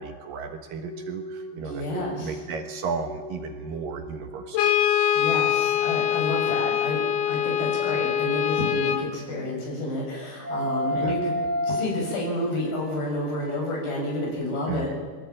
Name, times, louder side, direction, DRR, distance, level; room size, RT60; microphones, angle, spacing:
voice 1, 0.0-4.7 11.0-11.1 14.7-14.9, right 5 dB, 65° right, 5 dB, 2.8 m, -34 dB
sound 1, 0.8-4.9 5.9-9.5 10.0-14.3, left 1 dB, 40° left, 7.4 m, -35 dB
voice 2, 1.5-2.4 5.2-7.0 7.3-11.3 11.6-14.9, left 1 dB, 65° left, -1 dB, 8.8 m, -30 dB
Brass instrument, 4.5-9.1, left 9 dB, 85° left, 3.4 m, -24 dB
23.0 x 18.0 x 8.9 m, 1.5 s
omnidirectional pair, 4.7 m